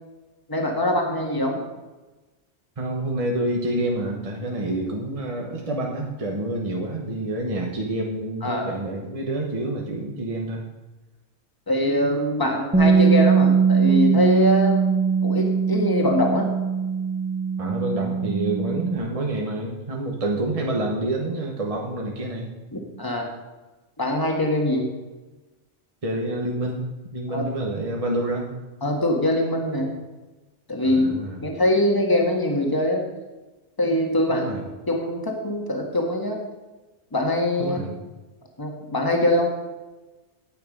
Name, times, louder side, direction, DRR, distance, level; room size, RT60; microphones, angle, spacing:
voice 1, 0.5-1.7 8.4-8.7 11.7-14.8 15.2-16.5 22.7-23.3 24.0-24.9 27.3-27.5 28.8-29.9 30.7-31.2 31.4-33.0 33.8-34.5 34.9-36.4 37.1-37.8 38.6-39.5, left 1 dB, 20° left, 1 dB, 1.6 m, -23 dB
voice 2, 2.8-10.7 17.6-22.5 26.0-28.6 30.8-31.4 34.3-34.6 37.6-38.0, right 1 dB, 30° right, 0 dB, 1.1 m, -28 dB
Bass guitar, 12.7-19.0, right 6 dB, 10° right, 1.0 m, -21 dB
9.5 x 9.3 x 5.3 m, 1.2 s
omnidirectional pair, 1.2 m